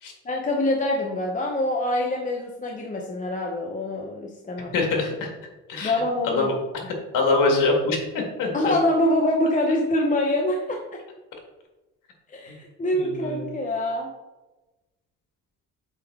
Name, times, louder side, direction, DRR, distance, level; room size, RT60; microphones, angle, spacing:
voice 1, 0.2-4.7 5.8-6.5 8.5-10.8 12.3-14.1, left 1 dB, 25° left, 0 dB, 0.6 m, -25 dB
voice 2, 4.7-5.3 5.7-6.5 7.1-8.7 12.9-13.5, left 3 dB, 80° left, 1 dB, 1.8 m, -24 dB
8.1 x 3.6 x 3.5 m, 1.1 s
cardioid pair, 145°, 32 cm